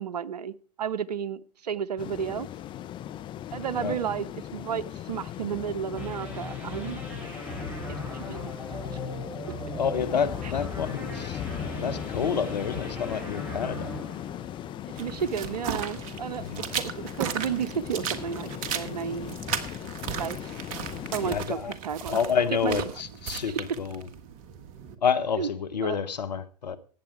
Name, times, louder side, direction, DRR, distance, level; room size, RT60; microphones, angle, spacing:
voice 1, 0.0-2.5 3.5-4.3 4.5-7.0 8.1-8.5 10.4-10.5 11.1-11.2 15.0-16.4 16.7-19.4 20.2-20.5 21.1-22.2 22.6-22.8 23.5-23.6 25.4-25.5 25.8-26.0, right 8 dB, 75° right, 0.7 m, -32 dB
sound 1, 2.0-21.4, left 12 dB, 25° left, 0.5 m, -38 dB
sound 2, 6.0-15.0, left 1 dB, 5° right, 5.0 m, -39 dB
voice 2, 9.8-11.4 11.8-13.9 16.4-16.6 21.2-21.7 22.1-24.1 25.0-26.8, left 7 dB, 80° left, 1.1 m, -29 dB
boots water step creaky dirt gravel, 14.9-24.9, right 7 dB, 45° right, 1.4 m, -36 dB
14.5 x 8.8 x 4.5 m
hypercardioid pair, 100°, 21 cm